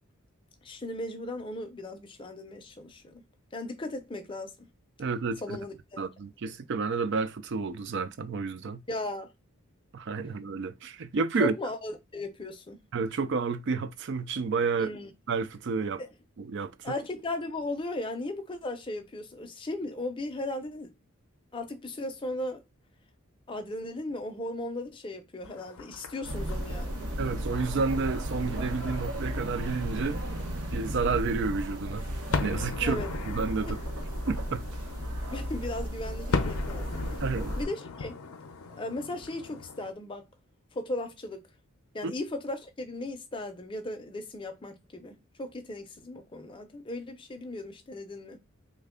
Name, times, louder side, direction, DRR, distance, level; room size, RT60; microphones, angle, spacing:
voice 1, 0.6-3.2 3.5-4.5 5.4-6.0 8.9-9.3 11.4-12.8 14.8-15.1 16.0-16.1 16.8-20.9 21.5-22.6 23.5-27.1 32.8-33.1 33.7-33.8 35.3-37.0 37.6-38.2 38.7-40.3 40.7-41.4 41.9-48.4, left 2 dB, 25° left, 0.5 m, -37 dB
voice 2, 5.0-5.6 6.0-8.8 9.9-11.5 12.9-14.9 15.3-16.0 16.4-16.9 27.2-30.2 30.7-32.1 32.4-33.8 34.3-34.6 37.2-37.5 42.0-42.1, right 4 dB, 55° right, 0.4 m, -30 dB
sound 1, 25.4-39.9, left 4 dB, 75° left, 0.5 m, -38 dB
sound 2, 26.2-37.6, equal, 80° right, 0.8 m, -34 dB
3.2 x 2.2 x 3.6 m
head